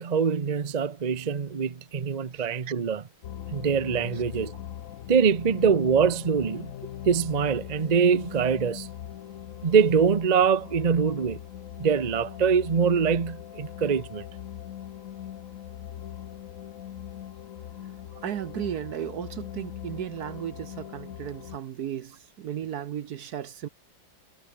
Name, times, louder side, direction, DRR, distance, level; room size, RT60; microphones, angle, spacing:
voice 1, 0.0-3.0 3.5-4.6 5.1-6.7 7.1-8.9 9.6-11.4 11.8-14.2, right 6 dB, 40° right, 0.6 m, -24 dB
sound 1, 3.2-21.6, left 10 dB, 55° left, 1.0 m, -41 dB
voice 2, 18.2-23.7, right 10 dB, 60° right, 1.2 m, -35 dB
omnidirectional pair, 2.2 m